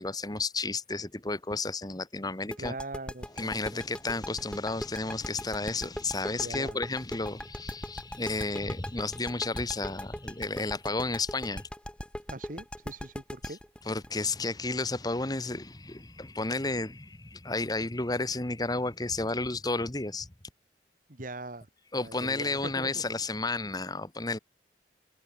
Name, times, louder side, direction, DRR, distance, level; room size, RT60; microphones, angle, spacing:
voice 1, 0.0-2.7 3.4-11.7 13.9-20.3 21.9-24.4, left 3 dB, 20° left, 1.4 m, -32 dB
sound 1, 2.5-15.2, equal, 5° left, 1.6 m, -39 dB
voice 2, 2.6-3.8 6.3-6.8 12.3-13.6 21.1-21.7 22.0-22.9, right 2 dB, 50° right, 2.6 m, -41 dB
head